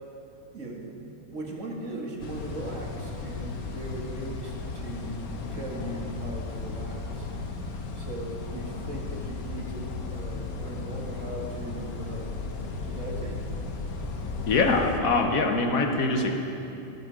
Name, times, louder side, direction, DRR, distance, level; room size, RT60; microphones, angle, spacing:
voice 1, 0.5-5.2 5.5-7.3 8.0-13.4, right 1 dB, 60° right, 0 dB, 1.9 m, -39 dB
sound 1, 2.2-15.0, left 3 dB, 90° left, 1.5 m, -35 dB
voice 2, 14.5-16.3, left 3 dB, 75° left, 4 dB, 1.5 m, -23 dB
12.5 x 12.5 x 5.1 m, 2.9 s
omnidirectional pair, 1.5 m